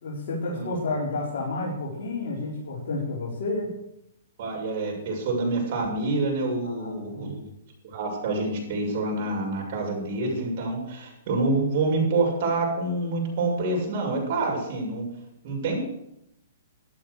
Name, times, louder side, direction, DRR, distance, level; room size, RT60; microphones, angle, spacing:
voice 1, 0.0-3.7 6.6-7.3, left 2 dB, 60° left, -6 dB, 4.9 m, -30 dB
voice 2, 4.4-7.4 7.9-15.1 15.4-15.8, right 2 dB, 50° right, -1 dB, 7.1 m, -27 dB
13.0 x 12.0 x 6.8 m, 0.81 s
hypercardioid pair, 135°, 0 cm